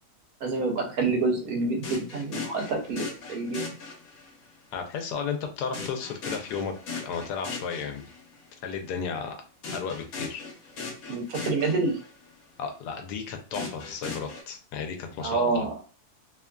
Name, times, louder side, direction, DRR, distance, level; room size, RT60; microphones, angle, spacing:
voice 1, 0.4-3.8 11.1-12.0 15.2-15.7, right 3 dB, 70° right, 3 dB, 1.1 m, -27 dB
sound 1, 1.8-4.5 5.7-8.4 9.6-12.3 13.5-14.4, left 4 dB, 65° left, 1.3 m, -38 dB
voice 2, 4.7-8.0 8.6-9.4 9.7-10.4 12.6-15.6, left 6 dB, 85° left, 5 dB, 1.2 m, -34 dB
2.9 x 2.4 x 2.2 m, 0.37 s
omnidirectional pair, 1.7 m